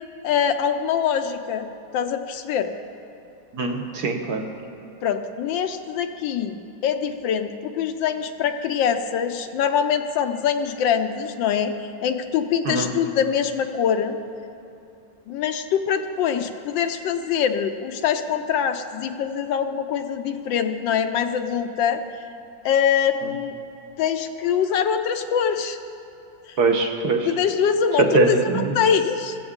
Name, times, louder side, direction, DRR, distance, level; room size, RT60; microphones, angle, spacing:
voice 1, 0.2-1.7 1.9-2.7 5.0-14.2 15.3-22.0 22.6-23.5 24.0-25.8 26.5-26.6 27.2-29.4, left 8 dB, 75° left, 8 dB, 1.3 m, -24 dB
voice 2, 3.5-4.4 12.6-12.9 23.2-23.3 26.6-27.3 28.0-28.8, right 3 dB, 60° right, 4 dB, 1.3 m, -21 dB
15.0 x 15.0 x 3.6 m, 2.9 s
omnidirectional pair, 2.2 m